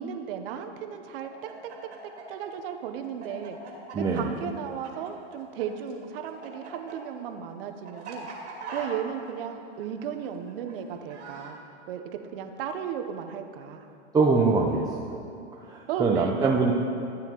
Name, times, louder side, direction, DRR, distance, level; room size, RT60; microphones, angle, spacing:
voice 1, 0.0-1.3 2.3-3.6 4.1-8.3 8.7-11.6 11.9-12.0 12.3-13.9 15.9-16.6, right 8 dB, 55° right, 6 dB, 0.9 m, -35 dB
Chicken rooster, 1.2-5.6 5.9-11.5, right 4 dB, 75° right, 2.4 m, -42 dB
voice 2, 3.9-4.3 14.1-15.1 15.6-16.7, right 4 dB, 10° right, -4 dB, 0.7 m, -23 dB
15.0 x 9.0 x 3.0 m, 2.6 s
hypercardioid pair, 115°, 34 cm